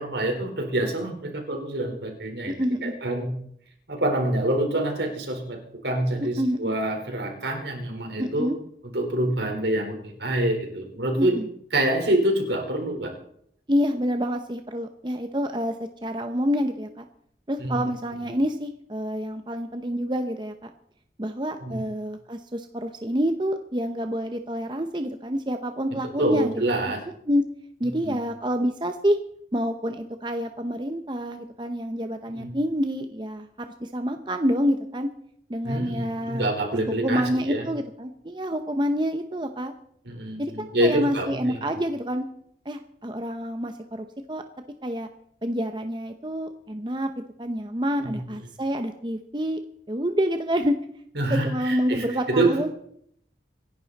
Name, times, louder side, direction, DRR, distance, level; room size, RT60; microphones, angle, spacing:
voice 1, 0.0-2.5 2.8-3.3 3.9-8.5 8.9-11.4 11.7-13.1 17.6-17.8 21.6-21.8 25.9-27.0 28.0-28.2 32.3-32.5 35.6-37.7 40.0-41.6 48.0-48.2 51.2-52.5, right 1 dB, 80° right, 3 dB, 4.2 m, -26 dB
voice 2, 2.5-2.9 6.4-6.7 8.2-8.6 11.2-11.5 13.7-17.1 17.5-20.7 21.2-26.9 27.3-27.5 27.8-29.2 29.5-35.1 35.5-36.5 36.7-39.7 40.4-42.2 42.6-44.4 44.8-45.1 45.4-49.6 49.9-50.8 51.3-52.7, equal, 25° right, 7 dB, 0.8 m, -27 dB
26.0 x 11.0 x 4.1 m, 0.68 s
head